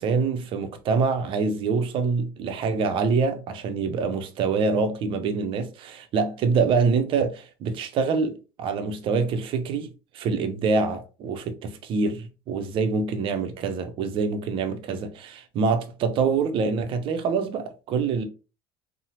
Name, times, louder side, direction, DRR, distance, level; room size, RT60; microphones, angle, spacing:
voice 1, 0.0-8.3 8.6-9.9 10.1-18.3, right 4 dB, 50° right, 0.6 m, -25 dB
2.7 x 2.1 x 2.9 m
hypercardioid pair, 70°, 12 cm